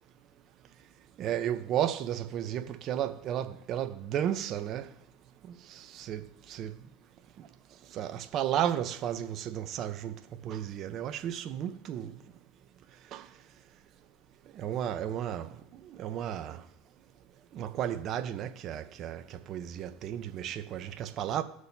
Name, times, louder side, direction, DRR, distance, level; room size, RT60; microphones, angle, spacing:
voice 1, 1.2-4.8 6.0-6.7 7.9-10.1 10.4-12.1 13.1-13.2 14.6-15.5 16.0-16.6 17.5-19.2 19.5-21.4, right 10 dB, 50° right, 0.8 m, -33 dB
18.0 x 6.4 x 2.8 m
supercardioid pair, 105°, 0 cm